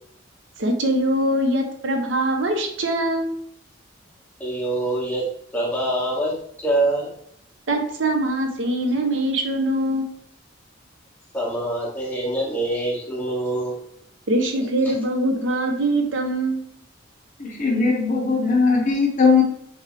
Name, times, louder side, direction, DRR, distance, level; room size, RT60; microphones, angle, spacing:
voice 1, 0.6-3.4 7.7-10.1 14.3-16.7, right 1 dB, 75° right, 4 dB, 0.8 m, -23 dB
voice 2, 4.4-5.2 5.5-6.3 6.6-7.1 11.3-13.8, right 1 dB, 10° left, -6 dB, 1.6 m, -24 dB
voice 3, 17.4-19.4, left 4 dB, 45° left, 0 dB, 0.8 m, -19 dB
6.6 x 2.3 x 3.3 m, 0.69 s
head